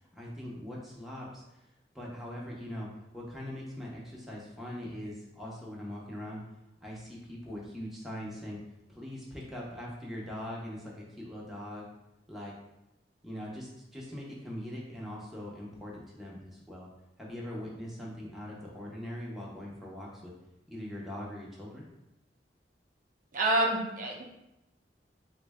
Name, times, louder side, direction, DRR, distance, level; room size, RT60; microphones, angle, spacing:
voice 1, 0.1-1.6 1.9-2.9 3.1-6.4 6.8-8.6 8.9-11.8 12.3-12.5 13.2-16.9 17.2-20.3 20.7-21.9, left 1 dB, ahead, -5 dB, 0.6 m, -41 dB
voice 2, 23.3-24.2, right 1 dB, 45° right, 0 dB, 0.6 m, -27 dB
3.8 x 2.1 x 3.4 m, 0.91 s
head